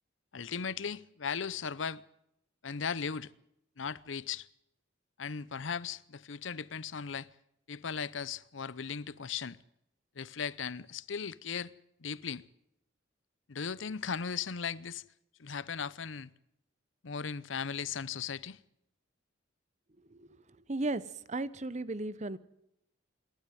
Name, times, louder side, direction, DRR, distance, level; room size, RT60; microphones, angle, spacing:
voice 1, 0.3-2.0 2.6-3.3 3.8-4.5 5.2-7.3 7.7-9.6 10.1-11.7 12.0-12.4 13.5-15.0 15.4-16.3 17.0-18.6, left 6 dB, 75° left, 0.7 m, -37 dB
voice 2, 20.1-20.4 20.7-21.0 21.3-22.4, right 2 dB, 35° right, 0.9 m, -35 dB
27.0 x 12.5 x 9.2 m
head